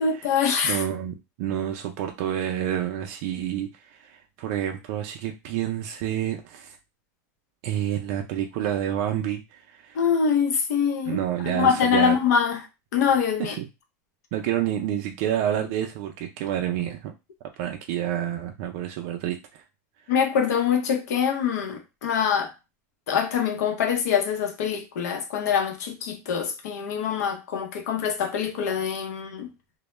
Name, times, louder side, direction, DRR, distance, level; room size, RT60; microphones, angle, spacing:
voice 1, 0.0-0.8 9.9-11.2 11.5-12.6 12.9-13.6 20.1-22.5 23.1-29.5, left 7 dB, 85° left, 0.6 m, -24 dB
voice 2, 0.6-6.8 7.6-10.0 11.1-12.1 13.4-13.7 14.3-17.1 17.6-19.6, right 11 dB, 55° right, 0.4 m, -29 dB
2.1 x 2.0 x 3.0 m
supercardioid pair, 150°, 9 cm